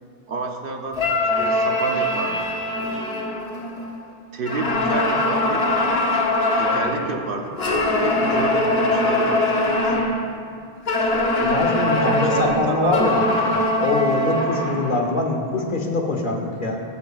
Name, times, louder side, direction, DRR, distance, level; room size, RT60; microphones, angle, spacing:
voice 1, 0.3-1.1 1.4-2.5 2.8-3.4 4.3-5.7 6.6-10.1 12.0-13.1, right 3 dB, 60° right, 3 dB, 1.0 m, -30 dB
sound 1, 0.9-4.0 4.4-7.0 7.6-10.2 10.9-15.1, left 1 dB, 75° left, 1.2 m, -22 dB
voice 2, 11.4-13.3 13.8-16.8, left 2 dB, 55° left, 2 dB, 1.1 m, -23 dB
14.0 x 9.4 x 2.4 m, 2.5 s
omnidirectional pair, 1.0 m